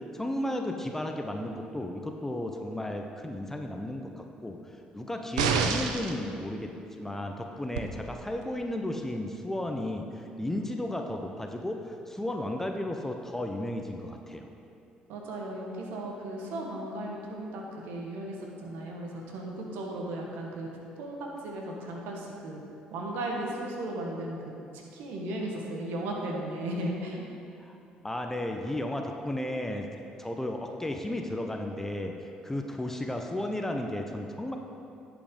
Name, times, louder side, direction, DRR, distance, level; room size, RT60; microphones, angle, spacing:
voice 1, 0.1-4.6 4.9-14.5 27.6-27.8 28.0-29.9 30.2-32.1 32.4-34.6, left 1 dB, 10° left, 3 dB, 0.8 m, -34 dB
sound 1, 5.4-6.2 7.8-7.9, right 6 dB, 90° right, 0.5 m, -27 dB
voice 2, 15.1-20.7 21.0-21.2 21.4-22.6 22.9-24.5 24.9-27.2, right 1 dB, 70° right, -1 dB, 1.4 m, -36 dB
10.5 x 5.2 x 5.3 m, 2.7 s
hypercardioid pair, 60°, 3 cm